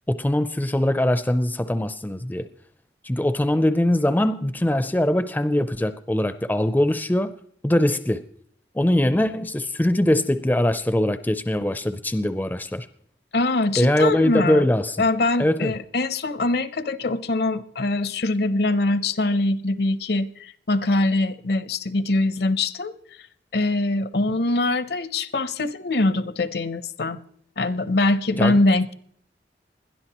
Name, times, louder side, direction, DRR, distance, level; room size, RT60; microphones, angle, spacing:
voice 1, 0.1-2.5 3.0-7.3 7.6-8.2 8.7-12.9 13.8-15.0 15.4-15.7 28.4-28.6, left 1 dB, 10° left, 0.4 m, -22 dB
voice 2, 13.3-14.7 15.0-22.9 23.5-27.2 27.6-28.9, left 2 dB, 65° left, 0.7 m, -23 dB
21.0 x 12.5 x 2.9 m
head